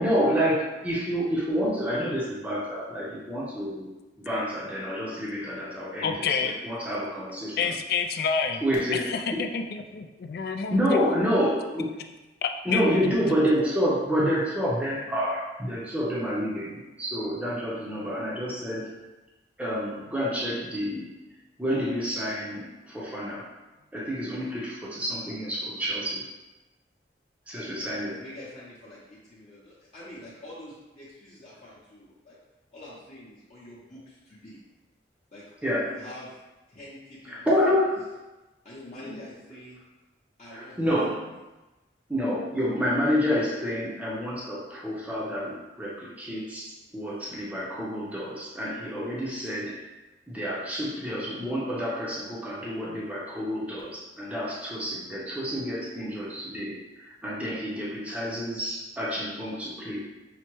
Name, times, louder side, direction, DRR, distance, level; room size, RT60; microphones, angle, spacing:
voice 1, 0.0-3.9 4.2-7.7 8.6-9.4 10.7-11.9 12.6-18.9 19.6-21.1 21.6-23.5 23.9-26.3 27.5-28.2 35.6-36.0 37.3-38.0 39.0-39.2 40.5-41.2 42.1-49.8 50.3-60.0, equal, 10° right, -6 dB, 0.6 m, -28 dB
voice 2, 6.0-6.6 7.6-8.6 9.1-11.2 12.4-12.8, left 6 dB, 55° left, 6 dB, 0.3 m, -28 dB
voice 3, 28.1-32.4 32.7-34.6 35.3-35.4 35.8-36.4 36.7-37.5 38.6-39.8 40.4-40.9 41.3-41.4, left 1 dB, 40° left, -9 dB, 0.7 m, -46 dB
5.7 x 2.1 x 3.0 m, 1.1 s
head